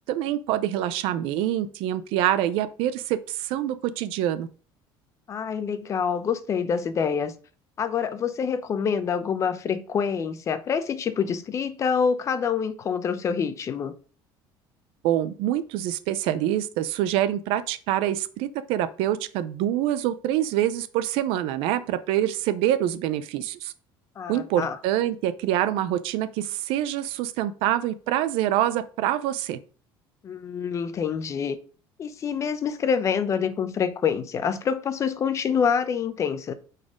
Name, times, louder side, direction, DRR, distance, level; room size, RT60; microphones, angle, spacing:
voice 1, 0.1-4.5 15.0-23.7 24.3-29.6, right 12 dB, 80° right, 0.6 m, -25 dB
voice 2, 5.3-7.3 7.8-13.9 24.2-24.8 30.2-31.6 32.0-36.5, left 6 dB, 35° left, 0.6 m, -26 dB
8.7 x 4.2 x 3.7 m
cardioid pair, 145°, 9 cm